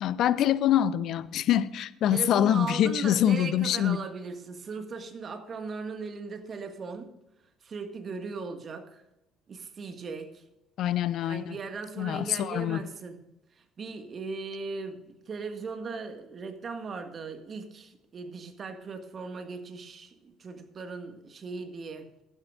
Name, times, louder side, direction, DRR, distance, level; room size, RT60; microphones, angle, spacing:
voice 1, 0.0-4.0 10.8-11.6 12.0-12.8, left 11 dB, 60° left, 0.6 m, -25 dB
voice 2, 2.1-7.1 7.6-9.0 9.5-10.4 11.2-13.2 13.6-22.1, right 4 dB, 40° right, 1.7 m, -38 dB
16.0 x 12.0 x 2.5 m
hypercardioid pair, 60°, 0 cm